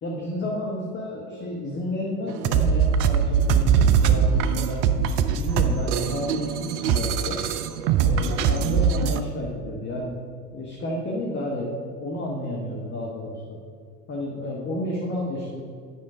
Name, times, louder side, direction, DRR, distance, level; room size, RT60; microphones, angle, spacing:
voice 1, 0.0-4.8 5.3-7.4 8.0-10.1 10.5-13.6 14.1-15.6, left 1 dB, 25° left, -2 dB, 1.1 m, -31 dB
sound 1, 2.3-9.2, right 7 dB, 40° right, 0.5 m, -21 dB
9.5 x 5.6 x 4.9 m, 2.2 s
figure-of-eight pair, 75°, 47 cm